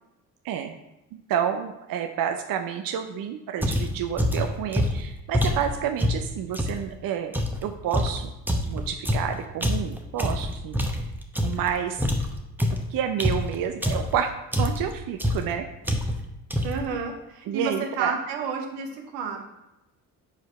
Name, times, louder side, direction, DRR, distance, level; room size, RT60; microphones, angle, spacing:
voice 1, 1.3-8.3 8.7-10.8 11.4-12.0 12.9-14.3 14.6-15.7 17.5-18.1, right 8 dB, 55° right, 6 dB, 0.6 m, -29 dB
sound 1, 3.6-6.8 7.3-11.7 12.0-14.2 14.5-14.9 15.2-15.5 15.8-16.3 16.5-16.9, left 1 dB, 5° right, 0.8 m, -26 dB
voice 2, 16.6-19.4, right 5 dB, 75° right, 3 dB, 1.1 m, -31 dB
5.1 x 4.6 x 4.6 m, 0.94 s
hypercardioid pair, 50°, 43 cm